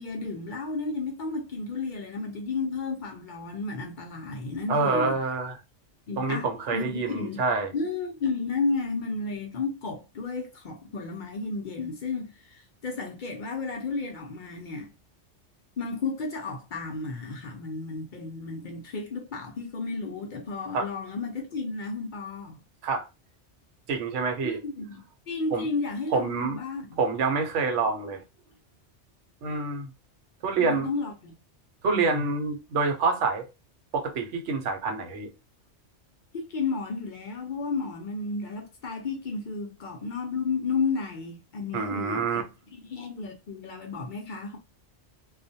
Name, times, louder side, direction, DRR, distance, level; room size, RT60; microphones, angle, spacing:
voice 1, 0.0-5.2 6.1-7.4 7.7-14.9 15.8-22.6 24.4-27.0 30.6-31.3 31.9-32.3 36.3-42.4 42.7-44.6, left 4 dB, 55° left, 0.6 m, -33 dB
voice 2, 4.7-5.6 6.2-7.7 20.7-20.9 22.8-23.1 23.9-24.6 25.5-25.7 26.1-26.6 27.0-28.2 29.4-29.9 30.4-30.9 31.8-33.5 33.9-35.3 41.7-42.4, right 4 dB, 80° right, 1.0 m, -27 dB
2.4 x 2.1 x 2.6 m
omnidirectional pair, 1.2 m